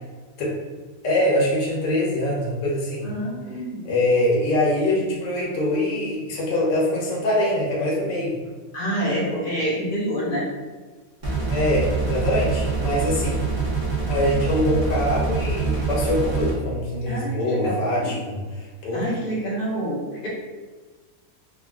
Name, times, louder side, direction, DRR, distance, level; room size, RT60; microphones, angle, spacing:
voice 1, 1.0-3.1 3.8-8.4 11.5-13.5 14.1-19.0, left 1 dB, 80° left, -4 dB, 1.4 m, -23 dB
voice 2, 3.0-3.9 8.7-10.5 12.9-13.2 17.1-18.1 18.9-20.3, equal, 45° left, -6 dB, 0.7 m, -27 dB
sound 1, 11.2-16.5, right 4 dB, 35° right, 0.7 m, -25 dB
3.6 x 2.2 x 2.3 m, 1.3 s
omnidirectional pair, 1.8 m